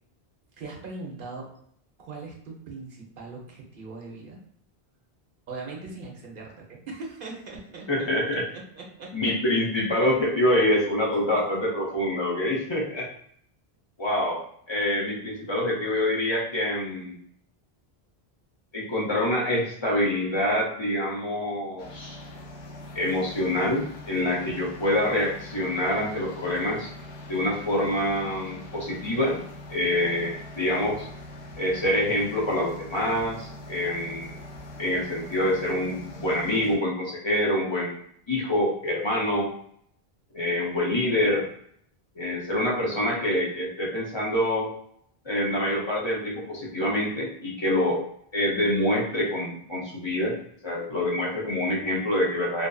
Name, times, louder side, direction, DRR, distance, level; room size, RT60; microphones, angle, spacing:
voice 1, 0.6-1.5 2.0-4.4 5.5-8.1 8.5-9.3 11.3-11.6, right 3 dB, 60° right, -1 dB, 0.8 m, -40 dB
voice 2, 7.9-8.4 9.1-13.1 14.0-14.4 14.7-17.2 18.7-22.2 22.9-26.9 27.3-29.4 29.7-31.1 31.6-34.4 34.8-39.5 40.3-41.5 42.2-44.7 45.2-48.0 48.3-50.3 50.6-52.7, left 1 dB, 35° left, -4 dB, 0.5 m, -26 dB
sound 1, 21.8-36.8, left 1 dB, 80° left, 0.8 m, -42 dB
2.6 x 2.4 x 2.2 m, 0.67 s
omnidirectional pair, 1.1 m